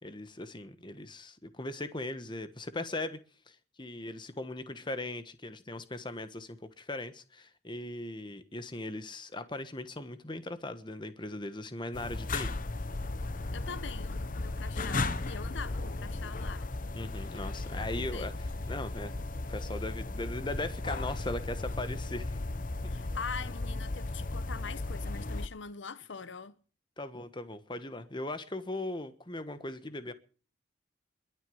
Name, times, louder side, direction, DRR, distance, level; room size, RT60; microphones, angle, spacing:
voice 1, 0.0-3.2 3.5-12.5 17.0-19.2 19.5-22.4 27.0-30.1, left 2 dB, 25° left, 1.3 m, -39 dB
sound 1, 11.9-25.5, left 2 dB, 45° left, 0.9 m, -35 dB
voice 2, 13.5-16.7 17.8-18.3 22.9-26.6, left 5 dB, 70° left, 0.8 m, -43 dB
22.0 x 8.3 x 7.9 m
head